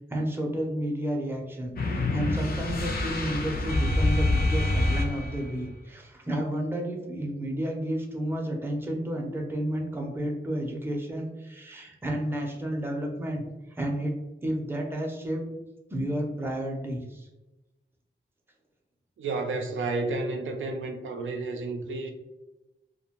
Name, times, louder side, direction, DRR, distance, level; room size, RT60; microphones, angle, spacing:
voice 1, 0.1-13.4 13.7-15.5 15.9-17.3, right 1 dB, 10° right, 0.5 m, -31 dB
sound 1, 1.8-5.6, left 2 dB, 50° left, 0.4 m, -26 dB
voice 2, 19.2-22.1, right 3 dB, 90° right, 0.4 m, -31 dB
2.6 x 2.1 x 2.8 m
wide cardioid pair, 115°, 20 cm